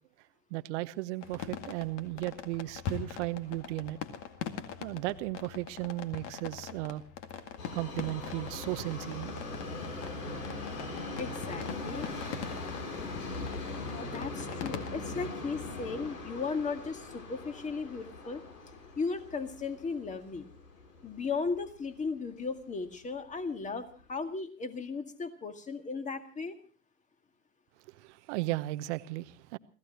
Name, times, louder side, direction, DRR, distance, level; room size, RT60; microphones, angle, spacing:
voice 1, 0.5-4.0 4.8-7.0 7.7-9.4 27.9-29.6, right 18 dB, 45° right, 1.0 m, -35 dB
sound 1, 1.2-14.9, left 8 dB, 40° left, 2.1 m, -43 dB
Subway metro underground, 7.6-21.7 22.0-22.1 22.9-23.0 23.3-23.4 24.0-24.1, left 2 dB, 75° left, 7.6 m, -40 dB
voice 2, 11.2-12.1 13.9-18.4 19.0-20.5 21.0-26.6, left 4 dB, 15° left, 2.0 m, -36 dB
28.0 x 17.0 x 3.0 m
hypercardioid pair, 105°, 49 cm